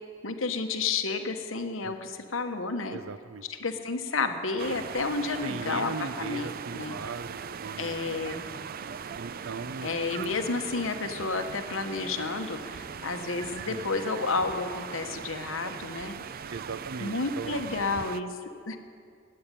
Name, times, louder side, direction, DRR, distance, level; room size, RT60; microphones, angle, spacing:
voice 1, 0.2-3.0 3.5-7.0 7.7-8.4 9.8-16.2 17.0-18.8, left 4 dB, 75° left, 6 dB, 1.1 m, -31 dB
voice 2, 2.9-3.4 5.4-8.0 9.1-9.9 13.7-13.8 16.5-17.6, right 4 dB, 90° right, 14 dB, 0.7 m, -39 dB
sound 1, 4.6-18.2, right 7 dB, 45° right, 0.4 m, -39 dB
16.5 x 8.8 x 10.0 m, 2.2 s
head